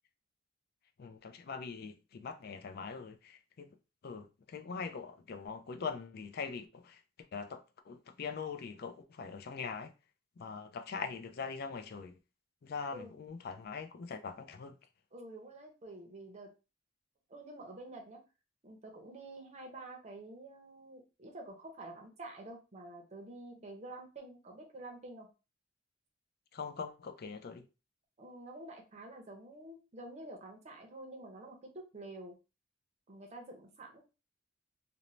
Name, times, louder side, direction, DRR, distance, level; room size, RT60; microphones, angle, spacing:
voice 1, 1.0-3.8 4.0-7.0 7.3-9.9 10.4-12.2 12.6-14.8 26.5-27.7, left 5 dB, 50° left, 0.4 m, -42 dB
voice 2, 15.1-16.5 17.3-18.2 18.6-25.3 28.2-32.4 33.1-34.0, right 2 dB, 35° right, 0.6 m, -48 dB
2.6 x 2.1 x 3.0 m
head